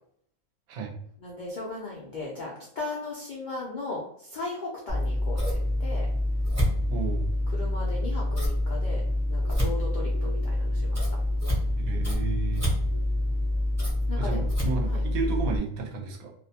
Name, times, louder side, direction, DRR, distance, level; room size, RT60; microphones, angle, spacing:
voice 1, 1.2-6.1 7.5-11.1 12.5-12.9 14.1-14.5 14.9-15.0, left 3 dB, 90° left, -3 dB, 0.4 m, -37 dB
Scissors, 4.9-15.6, left 1 dB, 20° right, 0.4 m, -26 dB
voice 2, 6.9-7.3 11.8-12.7 14.2-16.3, right 5 dB, 80° right, 2 dB, 1.0 m, -32 dB
2.6 x 2.1 x 2.7 m, 0.67 s
omnidirectional pair, 1.5 m